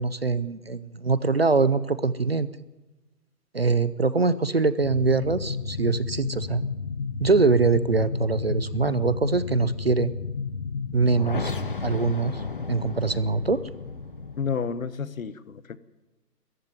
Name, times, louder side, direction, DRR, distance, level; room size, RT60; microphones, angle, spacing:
voice 1, 0.0-2.5 3.5-6.6 7.2-10.1 10.9-11.5 11.8-12.4 12.7-13.6, right 4 dB, 40° right, 16 dB, 0.6 m, -23 dB
Planetary Rumble, 4.8-14.5, left 5 dB, 35° left, 0.8 m, -32 dB
voice 2, 14.4-15.8, left 6 dB, 55° left, 16 dB, 1.2 m, -30 dB
21.5 x 14.5 x 9.6 m, 1.1 s
hypercardioid pair, 175°, 48 cm